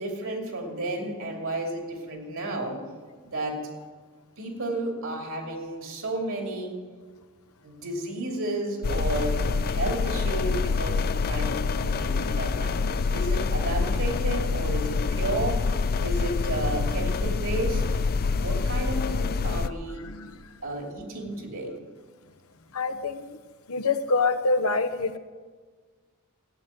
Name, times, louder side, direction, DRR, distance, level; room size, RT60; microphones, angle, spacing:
voice 1, 0.0-2.8 3.2-3.6 4.4-6.7 7.6-12.8 13.1-15.6 16.0-17.8 18.4-20.0 20.6-21.8, right 2 dB, 70° right, 1 dB, 2.8 m, -32 dB
sound 1, 8.8-19.7, left 4 dB, 45° left, 0.4 m, -26 dB
voice 2, 20.0-20.6 22.7-23.4 23.7-25.2, left 3 dB, 90° left, 8 dB, 0.9 m, -26 dB
14.0 x 9.4 x 7.4 m, 1.5 s
head